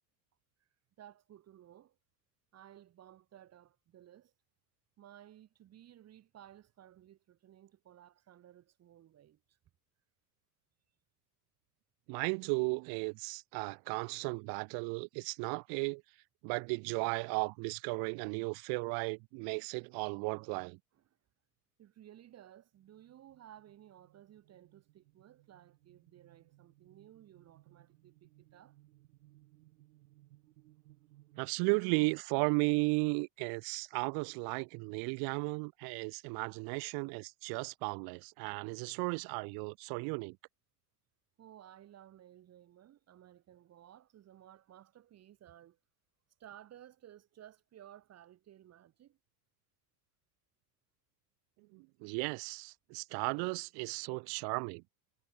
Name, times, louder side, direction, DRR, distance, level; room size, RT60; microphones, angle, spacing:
voice 1, 1.0-2.0 2.5-4.3 5.0-9.6 20.9-21.0 21.8-28.8 41.4-45.8 46.4-49.2, right 11 dB, 35° right, 1.7 m, -57 dB
voice 2, 12.1-16.0 16.4-20.8 31.4-40.4 51.7-54.8, right 35 dB, 55° right, 0.6 m, -35 dB
sound 1, 22.7-31.5, right 17 dB, 90° right, 3.6 m, -64 dB
supercardioid pair, 125°, 46 cm